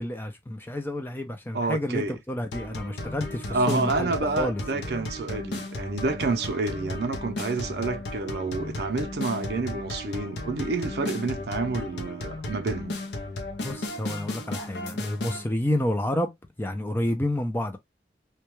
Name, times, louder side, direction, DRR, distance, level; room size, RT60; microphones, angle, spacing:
voice 1, 0.0-4.9 13.6-16.3 16.6-17.8, left 1 dB, 10° left, 0.4 m, -30 dB
voice 2, 1.5-2.2 3.5-13.0, right 3 dB, 65° right, 0.5 m, -29 dB
sound 1, 2.5-15.4, left 2 dB, 85° left, 0.6 m, -35 dB
2.2 x 2.2 x 3.0 m
head